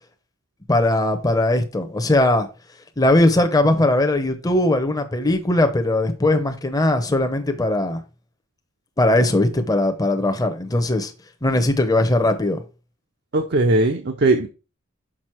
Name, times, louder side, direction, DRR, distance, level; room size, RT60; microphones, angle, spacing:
voice 1, 0.7-2.5 3.0-8.0 9.0-11.1 11.4-12.6, left 1 dB, 20° left, 0.8 m, -19 dB
voice 2, 13.3-14.5, right 2 dB, 55° right, 0.6 m, -19 dB
6.2 x 5.2 x 4.4 m
head